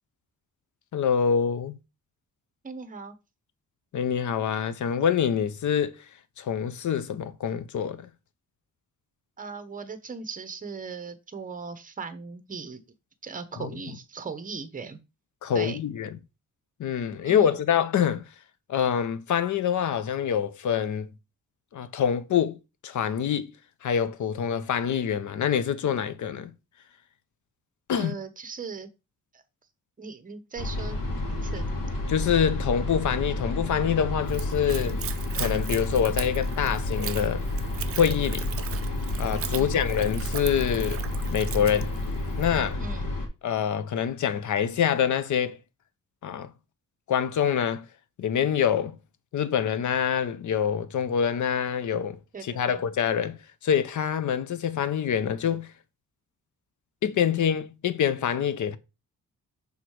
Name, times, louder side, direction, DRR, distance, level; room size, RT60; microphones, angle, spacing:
voice 1, 0.9-1.8 3.9-6.0 6.4-8.1 13.6-13.7 15.4-16.1 16.8-18.2 18.7-21.1 21.7-22.6 22.8-23.5 23.8-26.5 27.9-28.1 32.1-35.0 35.4-37.5 38.0-38.5 39.2-41.0 41.3-41.9 42.4-42.8 43.4-45.6 46.2-46.5 47.1-47.9 48.2-48.9 49.3-55.7 57.0-58.8, left 8 dB, 65° left, 0.7 m, -26 dB
voice 2, 2.6-3.2 9.4-12.8 13.2-15.0 15.5-15.8 17.2-17.6 27.9-28.9 29.3-29.4 30.0-31.0 31.3-31.7 39.5-39.8 42.8-43.1 52.3-52.8, right 5 dB, 25° right, 0.8 m, -38 dB
sound 1, 30.6-43.3, left 1 dB, 90° left, 2.1 m, -30 dB
Splash splatter / Trickle dribble, 34.2-42.6, right 10 dB, 45° right, 0.4 m, -39 dB
6.0 x 3.7 x 4.6 m
wide cardioid pair, 120°, 32 cm